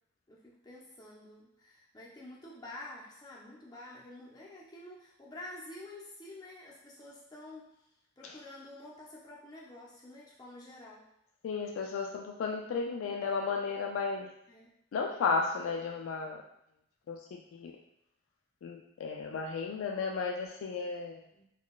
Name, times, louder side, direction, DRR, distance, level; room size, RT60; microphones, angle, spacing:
voice 1, 0.3-7.7 8.2-11.1 14.5-14.7 21.3-21.5, left 1 dB, 20° left, -4 dB, 0.5 m, -49 dB
voice 2, 11.4-14.3 14.9-16.4 17.1-17.7 18.6-21.2, left 4 dB, 80° left, 2 dB, 0.3 m, -34 dB
3.8 x 2.2 x 2.3 m, 0.79 s
head